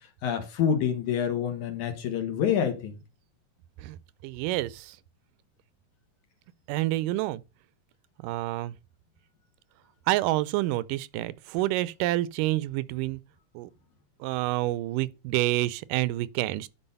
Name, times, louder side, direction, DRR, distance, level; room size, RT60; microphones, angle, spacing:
voice 1, 0.2-3.0, left 8 dB, 70° left, 2.9 m, -27 dB
voice 2, 4.2-5.0 6.7-7.4 8.2-8.7 10.1-13.2 13.6-13.7 14.2-16.7, right 17 dB, 90° right, 2.2 m, -28 dB
11.0 x 4.6 x 5.4 m
omnidirectional pair, 3.7 m